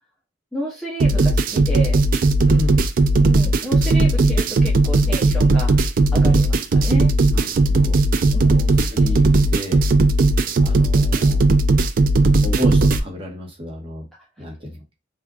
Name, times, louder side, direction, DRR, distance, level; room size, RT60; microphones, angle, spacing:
voice 1, 0.5-2.0 3.2-5.8 6.1-7.1 8.3-8.8, right 1 dB, ahead, -5 dB, 0.6 m, -31 dB
sound 1, 1.0-13.0, right 2 dB, 45° right, 0.3 m, -16 dB
voice 2, 2.5-2.8 7.3-8.0 8.5-9.8 10.6-11.4 12.4-14.0 14.4-14.8, left 1 dB, 30° right, -2 dB, 1.1 m, -32 dB
3.6 x 2.5 x 2.3 m, 0.24 s
head